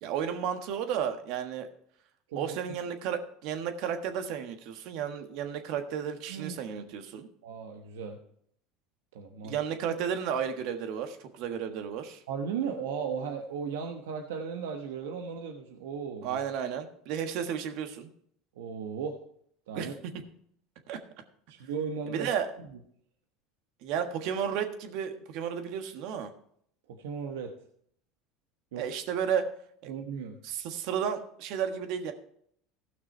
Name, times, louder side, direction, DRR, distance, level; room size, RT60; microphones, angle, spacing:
voice 1, 0.0-1.7 2.4-7.3 9.4-12.2 16.2-18.1 19.7-19.9 20.9-21.0 22.1-22.5 23.8-26.3 28.8-29.5 29.8-29.9 30.4-32.1, right 8 dB, 65° right, 7 dB, 1.4 m, -33 dB
voice 2, 7.4-8.2 9.1-9.6 12.3-16.4 18.6-19.2 19.7-19.9 21.5-22.3 22.6-22.7 26.9-27.5 28.7-28.9 29.9-30.4, right 6 dB, 85° right, 4 dB, 1.0 m, -36 dB
16.0 x 6.1 x 4.4 m, 0.66 s
supercardioid pair, 100°, 0 cm